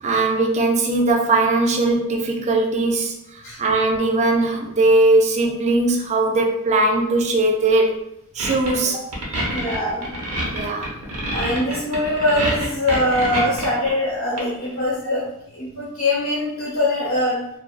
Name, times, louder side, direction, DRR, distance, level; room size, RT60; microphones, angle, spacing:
voice 1, 0.0-3.1 3.6-8.0 8.4-9.1 10.5-10.9, right 2 dB, 30° right, 1 dB, 0.3 m, -19 dB
sound 1, 8.4-8.8 9.1-13.9 14.4-14.8, right 1 dB, 80° right, 0.8 m, -26 dB
voice 2, 9.3-10.1 11.3-15.2 15.5-17.4, left 1 dB, 60° left, -6 dB, 0.8 m, -22 dB
2.3 x 2.2 x 2.3 m, 0.80 s
head